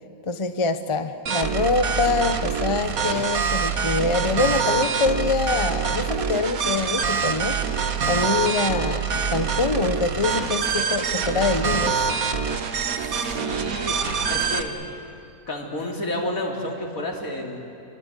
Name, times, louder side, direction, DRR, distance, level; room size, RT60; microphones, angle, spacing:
voice 1, 0.2-12.1, left 3 dB, 25° left, 9 dB, 0.9 m, -25 dB
sound 1, 1.3-14.6, right 6 dB, 80° right, 1.7 m, -25 dB
voice 2, 13.0-14.8 15.5-17.6, left 1 dB, 75° left, -1 dB, 3.9 m, -31 dB
28.5 x 23.5 x 8.3 m, 2.6 s
omnidirectional pair, 1.5 m